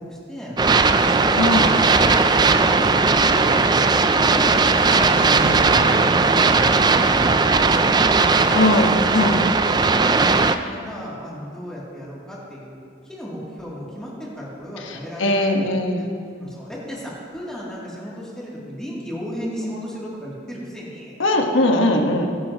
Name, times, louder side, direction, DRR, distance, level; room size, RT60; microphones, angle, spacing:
voice 1, 0.0-2.3 2.6-3.7 4.1-5.1 5.7-8.7 9.2-10.3 10.6-16.0 16.4-21.1 21.9-22.3, equal, 5° left, -7 dB, 2.7 m, -35 dB
sound 1, 0.6-10.6, right 4 dB, 20° right, 0.4 m, -17 dB
voice 2, 1.3-1.7 5.0-6.3 8.5-9.4 14.8-16.1 21.2-22.3, left 1 dB, 80° left, 2 dB, 1.3 m, -21 dB
21.0 x 11.0 x 3.0 m, 2.4 s
head